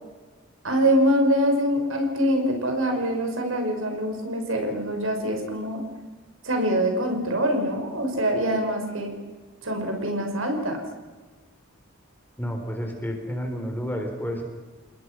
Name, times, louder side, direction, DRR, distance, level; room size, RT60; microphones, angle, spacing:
voice 1, 0.6-5.8 6.4-9.1 9.6-10.8, equal, 75° right, 4 dB, 5.8 m, -24 dB
voice 2, 12.4-14.4, equal, 10° left, 3 dB, 3.8 m, -30 dB
29.0 x 21.0 x 6.2 m, 1.3 s
head